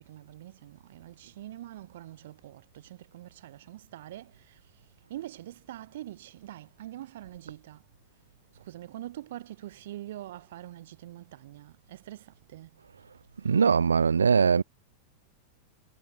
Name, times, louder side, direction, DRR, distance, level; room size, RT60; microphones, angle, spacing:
voice 1, 0.0-4.6 5.1-7.8 8.5-12.7, right 14 dB, 55° right, 4.8 m, -44 dB
voice 2, 13.4-14.6, right 6 dB, 75° right, 0.5 m, -21 dB
figure-of-eight pair, 90°, 0 cm